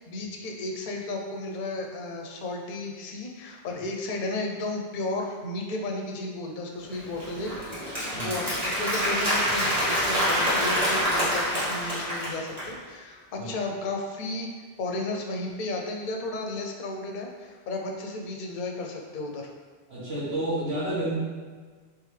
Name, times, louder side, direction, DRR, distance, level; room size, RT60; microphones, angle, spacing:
voice 1, 0.1-14.5 14.8-19.5, left 2 dB, 55° left, 1 dB, 0.6 m, -33 dB
Applause, 6.9-12.7, equal, 40° right, 1.3 m, -26 dB
voice 2, 19.9-21.1, right 1 dB, 75° right, -10 dB, 1.6 m, -30 dB
3.4 x 3.3 x 3.2 m, 1.5 s
omnidirectional pair, 1.1 m